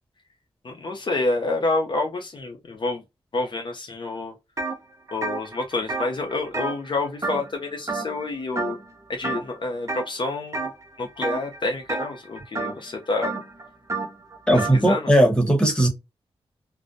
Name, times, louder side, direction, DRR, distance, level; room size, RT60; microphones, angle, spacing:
voice 1, 0.6-3.0 3.3-4.3 5.1-8.8 9.1-10.7 11.0-13.3 14.5-15.1, left 2 dB, 45° left, 0.5 m, -28 dB
sound 1, 4.6-4.8 5.1-7.6 7.9-8.3 8.6-8.9 9.2-10.1 10.5-10.8 11.2-14.8, right 3 dB, 30° right, 0.6 m, -30 dB
voice 2, 14.5-15.9, right 1 dB, 10° left, 1.1 m, -18 dB
2.5 x 2.0 x 2.5 m
cardioid pair, 70°, 11 cm